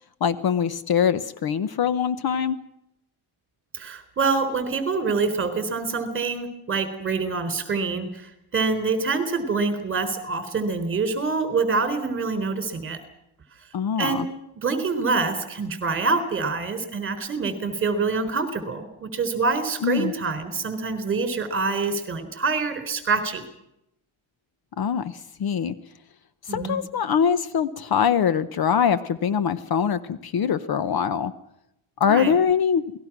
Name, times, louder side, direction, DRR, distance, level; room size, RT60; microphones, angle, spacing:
voice 1, 0.2-2.6 13.7-14.3 19.8-20.1 24.8-25.7 26.5-31.3 32.0-32.8, left 7 dB, 50° left, 13 dB, 1.0 m, -23 dB
voice 2, 3.7-13.0 14.0-14.3 14.6-23.4 26.5-26.8 32.0-32.3, right 4 dB, 25° right, 9 dB, 3.8 m, -26 dB
28.0 x 19.5 x 6.0 m, 0.82 s
cardioid pair, 180°, 49 cm